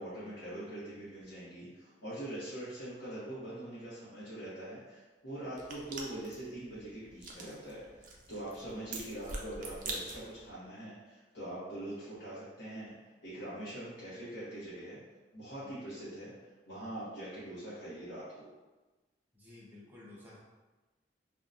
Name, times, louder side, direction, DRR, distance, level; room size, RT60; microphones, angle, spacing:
voice 1, 0.0-15.0 15.3-18.5, right 1 dB, 80° left, -11 dB, 0.9 m, -43 dB
sound 1, 5.5-10.5, right 2 dB, 45° right, 0.4 m, -45 dB
voice 2, 19.3-20.4, left 2 dB, 10° right, -7 dB, 0.7 m, -53 dB
2.7 x 2.1 x 2.4 m, 1.2 s
head